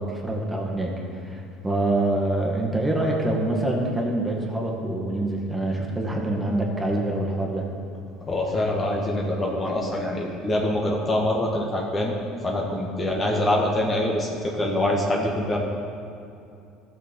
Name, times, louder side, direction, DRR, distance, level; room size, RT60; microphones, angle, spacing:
voice 1, 0.0-7.7, right 1 dB, 10° right, -2 dB, 2.0 m, -25 dB
voice 2, 8.2-12.1 12.4-15.6, left 1 dB, 30° left, -1 dB, 1.5 m, -25 dB
13.5 x 6.5 x 5.4 m, 2.6 s
supercardioid pair, 95°, 0 cm